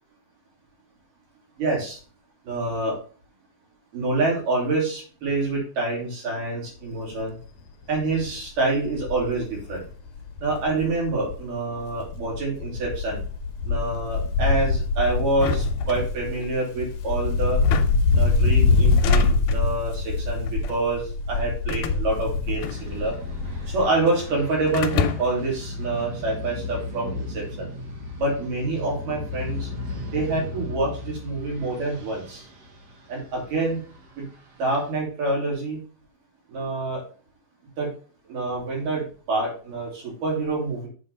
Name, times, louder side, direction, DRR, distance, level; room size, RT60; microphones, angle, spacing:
voice 1, 1.6-2.0 2.5-2.9 3.9-7.3 7.9-9.8 10.4-13.2 13.7-17.6 18.1-23.1 23.7-27.7 28.2-29.7 30.1-32.4 33.1-33.8 34.2-34.3 34.6-35.8 36.5-37.0 37.8-37.9 38.3-39.0 39.3-40.9, right 2 dB, 80° right, -3 dB, 4.6 m, -26 dB
Wind, 6.9-7.2 7.6-7.7 8.0-11.5 11.8-24.0 24.2-24.3, left 4 dB, 65° left, 1.9 m, -24 dB
sound 1, 15.3-16.5 17.5-18.2 18.8-19.7 20.5-20.9 21.7-23.2 23.5-24.2 24.7-25.5, left 8 dB, 90° left, 2.2 m, -31 dB
sound 2, 22.6-34.9, left 2 dB, 55° right, 2.3 m, -36 dB
8.0 x 3.8 x 5.4 m, 0.40 s
omnidirectional pair, 3.7 m